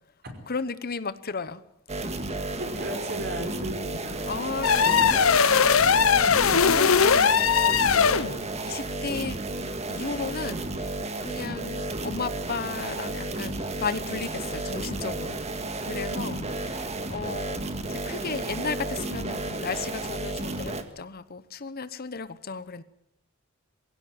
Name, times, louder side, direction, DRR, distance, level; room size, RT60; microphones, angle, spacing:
voice 1, 0.5-1.6 4.2-9.4 9.9-15.4 15.8-22.8, left 4 dB, 45° left, 14 dB, 1.0 m, -35 dB
sound 1, 1.9-20.8, right 2 dB, 30° right, 1.9 m, -32 dB
voice 2, 2.6-4.3 4.8-5.1 16.1-16.5, equal, 50° right, 4 dB, 5.4 m, -36 dB
sound 2, 4.6-8.3, left 6 dB, 90° left, 0.9 m, -20 dB
22.5 x 16.5 x 9.5 m, 0.77 s
head